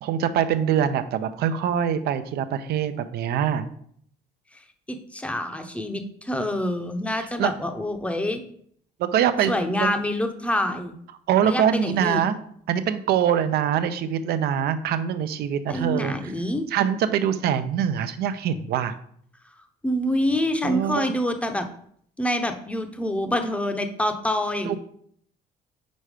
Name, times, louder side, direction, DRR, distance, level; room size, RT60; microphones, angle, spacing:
voice 1, 0.0-3.7 7.2-7.5 9.0-9.5 9.8-9.9 11.3-12.4 12.7-16.3 16.7-18.9 20.6-21.1 24.7-24.8, right 9 dB, 70° right, 11 dB, 0.6 m, -24 dB
voice 2, 4.9-8.4 9.5-10.9 11.4-12.2 15.7-16.6 19.8-21.7 22.2-24.8, left 1 dB, 5° left, 6 dB, 0.7 m, -26 dB
5.3 x 4.4 x 4.9 m, 0.65 s
cardioid pair, 110°, 17 cm